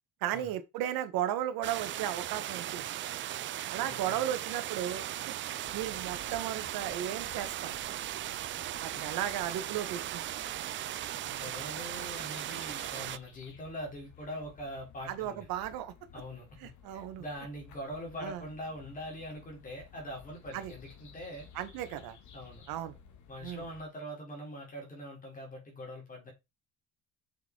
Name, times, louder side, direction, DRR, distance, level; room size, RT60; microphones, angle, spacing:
voice 1, 0.2-2.9 3.7-5.3 5.7-7.8 8.8-10.4 15.1-15.9 16.6-17.2 18.2-18.4 20.5-20.7 21.5-22.2 22.7-23.0 23.4-23.6, right 11 dB, 80° right, 1.8 m, -35 dB
sound 1, 1.6-13.2, right 13 dB, 35° right, 0.4 m, -38 dB
voice 2, 3.8-4.3 8.9-9.0 11.2-15.4 16.1-21.5 22.3-22.6 23.3-26.3, equal, 25° left, 4.3 m, -43 dB
sound 2, 5.6-23.8, left 7 dB, 55° left, 2.3 m, -55 dB
7.0 x 6.9 x 4.7 m
cardioid pair, 170°, 35 cm